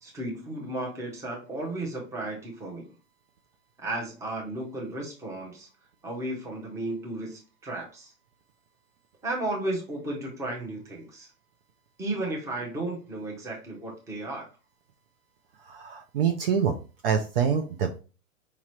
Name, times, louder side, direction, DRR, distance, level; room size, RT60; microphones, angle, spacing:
voice 1, 0.0-2.9 3.8-5.7 6.0-8.1 9.2-11.3 12.0-14.4, right 2 dB, 5° right, -1 dB, 0.7 m, -34 dB
voice 2, 15.7-16.7 17.0-18.0, right 7 dB, 45° right, 5 dB, 0.5 m, -25 dB
4.9 x 3.0 x 3.0 m, 0.34 s
hypercardioid pair, 150°, 42 cm